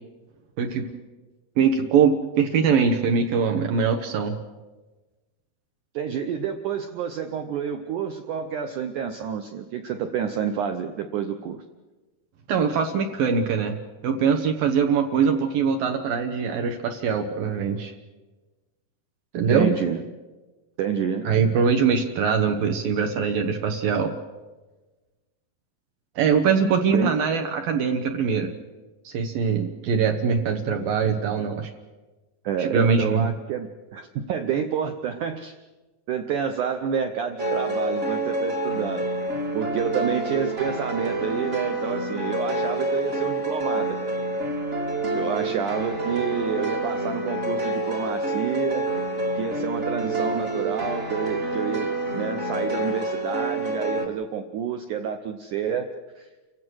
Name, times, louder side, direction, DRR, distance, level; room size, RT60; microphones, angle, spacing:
voice 1, 0.6-0.9 1.6-4.4 12.5-13.8 14.0-17.9 19.3-19.7 21.3-24.1 26.2-28.5 29.1-31.7 32.6-33.3, right 6 dB, 65° right, 5 dB, 2.5 m, -22 dB
voice 2, 5.9-11.6 19.4-20.0 20.8-21.3 26.9-27.1 32.4-35.5 36.1-39.1 39.5-44.1 45.1-48.9 49.4-55.9 56.2-56.3, right 7 dB, 85° right, 7 dB, 1.7 m, -29 dB
sound 1, 37.4-54.0, right 2 dB, 30° right, 1.2 m, -27 dB
29.0 x 16.0 x 6.3 m, 1.2 s
omnidirectional pair, 4.9 m